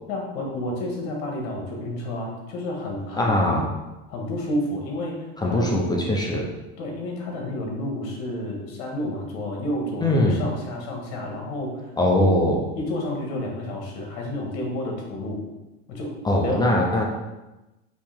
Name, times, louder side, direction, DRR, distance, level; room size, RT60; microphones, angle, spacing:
voice 1, 0.1-3.4 4.1-5.8 6.8-11.9 12.2-12.3 12.8-15.4 15.9-16.1 16.4-16.6, left 1 dB, 65° left, 0 dB, 1.5 m, -30 dB
voice 2, 3.2-3.7 5.4-6.5 10.0-10.4 12.0-12.6 16.2-17.0, left 1 dB, 15° left, -1 dB, 0.5 m, -21 dB
5.3 x 2.9 x 3.5 m, 1.0 s
supercardioid pair, 135°, 31 cm